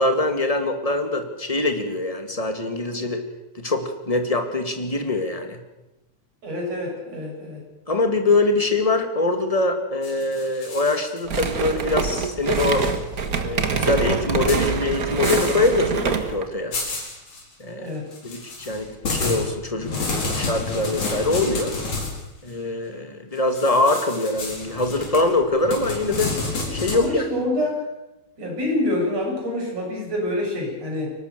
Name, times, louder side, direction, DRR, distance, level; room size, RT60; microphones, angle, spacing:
voice 1, 0.0-3.2 3.5-5.6 7.9-12.9 13.4-16.8 17.6-17.9 18.2-21.7 22.4-26.3 26.7-27.3, left 2 dB, 15° left, 6 dB, 1.8 m, -23 dB
voice 2, 6.4-7.6 17.8-18.1 26.9-27.8 28.4-31.1, left 1 dB, 55° right, -2 dB, 8.9 m, -26 dB
sound 1, 10.0-11.8 12.1-12.9 13.2-13.3 14.5-14.7 15.2-15.8 16.1-16.2 16.7-17.4 18.1-22.2 23.6-27.0, left 3 dB, 70° left, 6.1 m, -30 dB
sound 2, 11.3-16.5, right 5 dB, 40° right, 1.5 m, -25 dB
23.5 x 19.0 x 6.8 m, 0.96 s
omnidirectional pair, 3.5 m